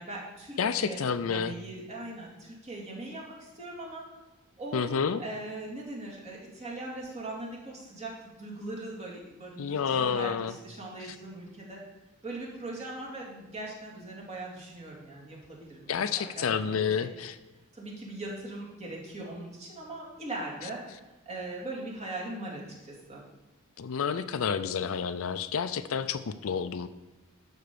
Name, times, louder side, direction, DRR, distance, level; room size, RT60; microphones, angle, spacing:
voice 1, 0.0-4.0 4.6-4.8 5.2-11.8 12.2-17.1 17.7-20.8 21.3-23.2, right 2 dB, 30° right, -3 dB, 2.5 m, -40 dB
voice 2, 0.6-1.5 4.7-5.2 9.6-10.5 11.0-11.2 15.9-17.4 23.8-26.9, left 6 dB, 70° left, 12 dB, 0.5 m, -29 dB
11.5 x 4.5 x 6.9 m, 1.1 s
head